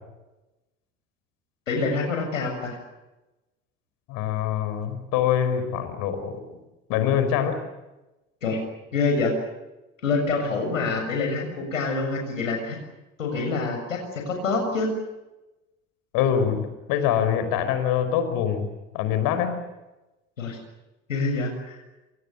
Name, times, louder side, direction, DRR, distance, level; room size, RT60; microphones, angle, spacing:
voice 1, 1.7-2.8 8.4-8.6 8.9-9.4 10.0-12.8 13.2-14.9 20.4-20.6 21.1-21.8, left 3 dB, 75° left, 3 dB, 7.0 m, -26 dB
voice 2, 4.1-6.6 6.9-7.6 16.1-18.7 18.9-19.6, left 9 dB, 55° left, 10 dB, 5.2 m, -24 dB
28.0 x 28.0 x 6.9 m, 1.0 s
figure-of-eight pair, 65°, 39 cm